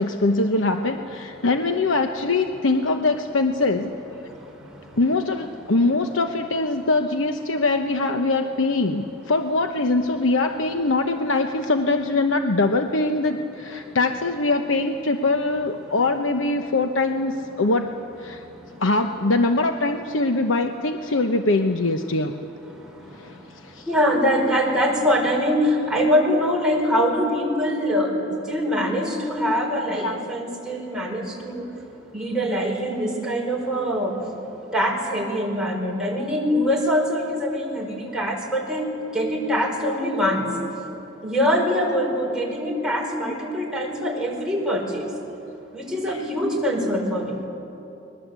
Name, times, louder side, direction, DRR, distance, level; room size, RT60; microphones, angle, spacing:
voice 1, 0.0-3.9 5.0-17.9 18.2-18.4 18.8-22.3 23.1-23.9 30.0-30.2 46.1-46.2, left 2 dB, 75° left, 6 dB, 1.0 m, -22 dB
voice 2, 23.9-31.6 32.1-34.1 34.7-38.9 39.1-40.4 41.2-45.0 45.7-47.3, equal, 5° right, -3 dB, 5.0 m, -23 dB
30.0 x 21.5 x 8.2 m, 3.0 s
head